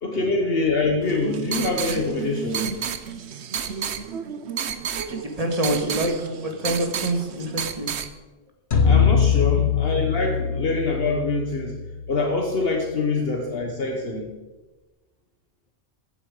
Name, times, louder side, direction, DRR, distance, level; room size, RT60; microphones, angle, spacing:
voice 1, 0.0-2.7 8.8-11.8 12.1-14.3, left 3 dB, 65° left, 2 dB, 1.5 m, -25 dB
sound 1, 1.0-8.1, right 7 dB, 85° right, 1.1 m, -31 dB
voice 2, 5.1-7.9, right 1 dB, 35° right, 3 dB, 2.0 m, -26 dB
sound 2, 8.7-13.0, left 7 dB, 80° left, 1.6 m, -23 dB
14.5 x 9.0 x 4.9 m, 1.2 s
omnidirectional pair, 1.1 m